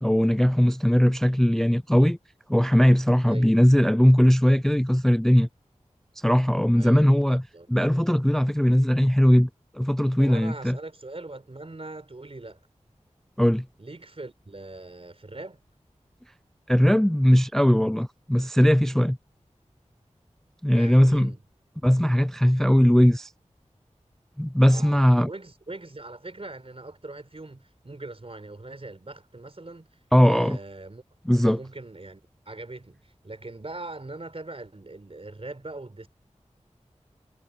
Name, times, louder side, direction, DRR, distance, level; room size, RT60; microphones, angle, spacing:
voice 1, 0.0-2.2 2.5-5.5 6.2-7.4 7.7-9.5 9.7-10.8 13.4-13.7 16.7-19.2 20.6-21.3 21.8-23.3 24.4-25.3 30.1-30.6 31.3-31.6, equal, 5° left, 0.3 m, -19 dB
voice 2, 3.3-3.6 6.7-7.7 10.2-12.6 13.8-15.6 20.7-21.4 24.7-29.9 30.2-31.0 31.5-36.1, right 2 dB, 50° right, 4.3 m, -41 dB
wide cardioid pair, 50°, 12 cm